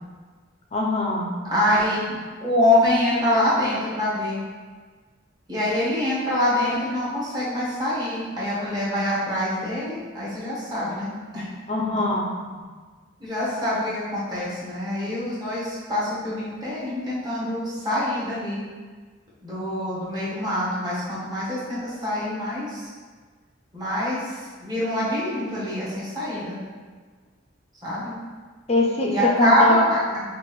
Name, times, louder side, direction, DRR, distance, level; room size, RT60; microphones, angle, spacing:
voice 1, 0.7-1.3 11.7-12.3 28.7-29.8, left 2 dB, 35° left, 0 dB, 0.5 m, -22 dB
voice 2, 1.4-4.4 5.5-11.5 12.6-12.7 13.2-18.6 19.4-22.9 23.7-26.6 27.8-28.1 29.1-30.2, left 1 dB, 20° right, -9 dB, 1.3 m, -25 dB
5.7 x 2.5 x 3.1 m, 1.5 s
head